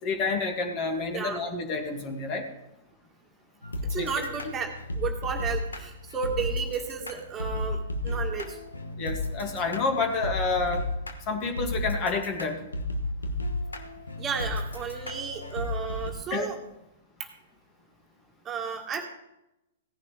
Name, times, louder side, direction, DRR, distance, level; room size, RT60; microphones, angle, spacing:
voice 1, 0.0-2.5 4.0-4.3 9.0-10.9 11.3-12.6 16.3-16.5, left 4 dB, 35° left, 4 dB, 2.3 m, -29 dB
sound 1, 3.6-16.1, left 2 dB, 85° left, 1.3 m, -34 dB
voice 2, 3.8-8.6 14.2-16.6 17.2-17.3 18.5-19.1, right 6 dB, 25° right, 2 dB, 1.8 m, -33 dB
17.0 x 10.5 x 3.4 m, 0.89 s
hypercardioid pair, 115°, 0 cm